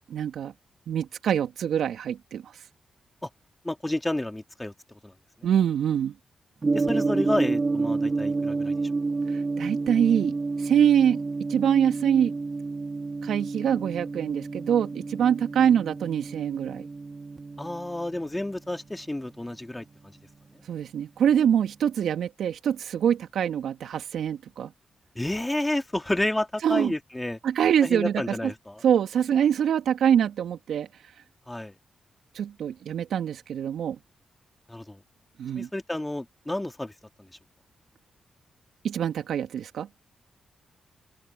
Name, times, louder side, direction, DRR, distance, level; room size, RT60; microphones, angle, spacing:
voice 1, 0.1-0.5 0.9-2.5 5.4-6.1 9.3-12.3 13.2-16.9 20.7-24.7 26.6-26.9 27.4-28.5 28.8-30.9 32.3-34.0 35.4-35.7 38.8-39.9, right 9 dB, 75° right, 3.0 m, -24 dB
voice 2, 3.6-4.7 5.0-5.1 6.7-8.7 17.6-20.2 25.2-27.4 27.8-28.8 31.5-31.8 34.7-35.0 35.6-36.9 37.2-37.3, left 1 dB, 15° left, 3.3 m, -30 dB
Gong, 6.6-20.8, right 3 dB, 40° right, 2.9 m, -30 dB
open air
supercardioid pair, 40°, 0 cm